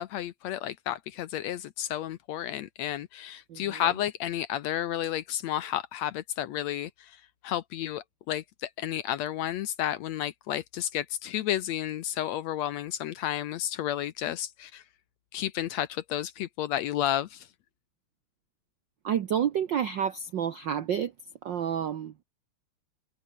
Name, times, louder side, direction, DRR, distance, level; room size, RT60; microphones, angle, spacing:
voice 1, 0.0-7.2 7.4-14.8 15.3-17.5, left 12 dB, 70° left, 2.0 m, -32 dB
voice 2, 3.5-3.8 19.0-21.1 21.4-22.1, right 8 dB, 80° right, 1.0 m, -29 dB
omnidirectional pair, 3.4 m